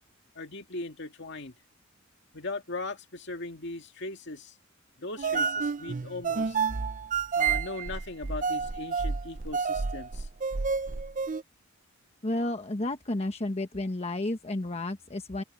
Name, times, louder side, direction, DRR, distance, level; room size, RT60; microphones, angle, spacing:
voice 1, 0.4-1.5 2.3-4.5 5.0-6.6 7.3-10.3, left 2 dB, 60° left, 2.1 m, -39 dB
sound 1, 5.2-11.4, right 5 dB, 40° right, 0.6 m, -30 dB
voice 2, 12.2-15.4, left 1 dB, 30° left, 1.1 m, -31 dB
open air
head